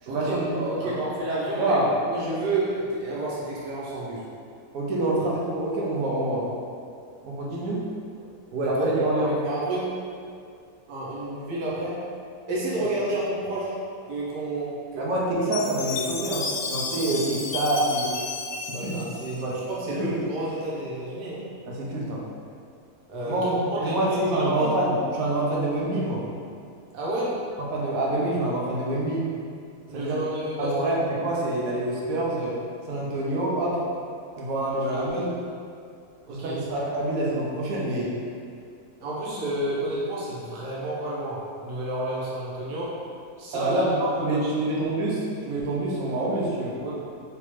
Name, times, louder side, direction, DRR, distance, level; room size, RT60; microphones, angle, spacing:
voice 1, 0.0-0.9 1.5-1.9 4.7-6.4 7.2-7.8 8.8-9.3 15.0-18.1 18.6-19.0 19.4-19.6 20.0-20.1 21.7-22.2 23.3-26.2 27.6-29.3 29.9-30.2 30.6-32.6 32.9-33.8 34.4-35.3 36.3-38.1 43.5-46.7, right 1 dB, 65° right, -5 dB, 1.0 m, -26 dB
voice 2, 0.6-4.2 7.5-7.6 8.5-9.9 10.9-12.0 12.5-13.7 14.1-15.1 18.7-21.4 23.1-24.0 24.3-24.7 26.9-27.4 29.9-30.7 34.8-35.2 36.3-36.9 39.0-43.0 43.4-44.5 46.8-47.0, right 1 dB, 90° right, -7 dB, 1.4 m, -30 dB
Chime, 15.5-19.9, left 4 dB, 80° left, 1.1 m, -32 dB
3.5 x 2.9 x 3.0 m, 2.4 s
omnidirectional pair, 1.8 m